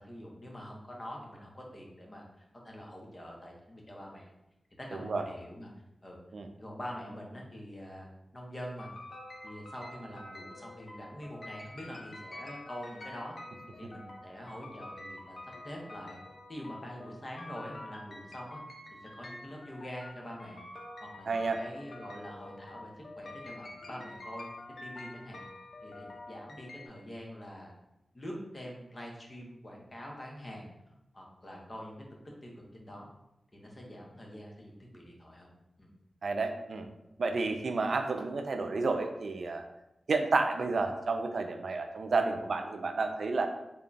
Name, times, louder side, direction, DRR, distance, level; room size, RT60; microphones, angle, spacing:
voice 1, 0.0-4.3 4.8-5.7 6.0-6.2 6.6-8.9 9.4-13.3 13.8-15.4 15.6-16.2 16.5-18.6 18.9-24.5 24.8-25.4 25.8-27.7 28.1-30.7 31.1-33.1 33.5-35.5 35.8-35.9, equal, 35° left, -1 dB, 0.9 m, -45 dB
voice 2, 4.9-5.2 6.3-6.5 21.3-21.6 36.2-36.9 37.2-39.6 40.1-43.5, right 3 dB, 75° right, 5 dB, 0.4 m, -30 dB
sound 1, 8.8-26.9, left 1 dB, 65° left, 0.6 m, -48 dB
3.7 x 2.3 x 3.9 m, 0.89 s
cardioid pair, 60°, 0 cm